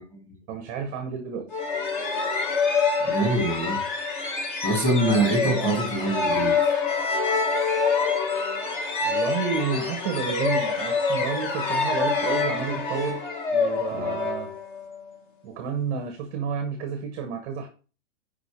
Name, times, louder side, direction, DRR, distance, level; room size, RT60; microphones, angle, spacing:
voice 1, 0.5-1.6 5.5-5.7 9.0-13.2 13.5-14.5 15.4-17.7, right 6 dB, 20° right, 5 dB, 0.6 m, -31 dB
sound 1, 1.5-15.0, left 4 dB, 40° left, 1.3 m, -26 dB
voice 2, 3.0-3.8 4.6-6.6 13.9-14.2, right 2 dB, 5° left, 0 dB, 2.0 m, -24 dB
5.1 x 4.1 x 4.9 m, 0.35 s
hypercardioid pair, 160°, 39 cm